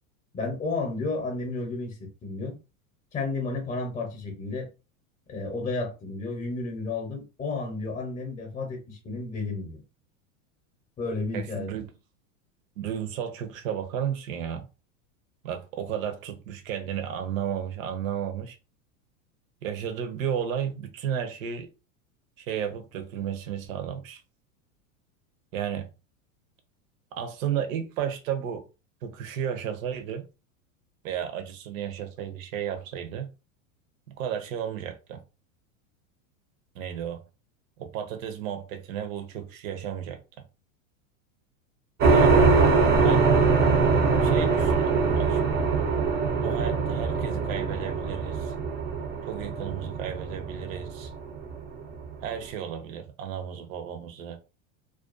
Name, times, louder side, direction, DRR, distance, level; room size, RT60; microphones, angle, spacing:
voice 1, 0.3-2.0 2.2-2.6 3.1-4.7 5.3-9.8 11.0-11.7 42.3-42.8, left 3 dB, 20° left, 0.7 m, -32 dB
voice 2, 11.3-11.8 12.8-14.7 15.4-18.6 19.6-21.7 22.4-24.2 25.5-25.9 27.1-28.6 29.0-30.2 31.0-33.3 34.2-35.2 36.7-37.2 37.8-40.2 42.1-42.4 43.0-43.2 44.2-45.6 46.4-48.5 49.2-51.1 52.2-54.4, right 9 dB, 75° right, 0.7 m, -33 dB
sound 1, 42.0-52.1, right 4 dB, 25° right, 0.5 m, -23 dB
2.4 x 2.3 x 2.4 m
supercardioid pair, 135°, 40 cm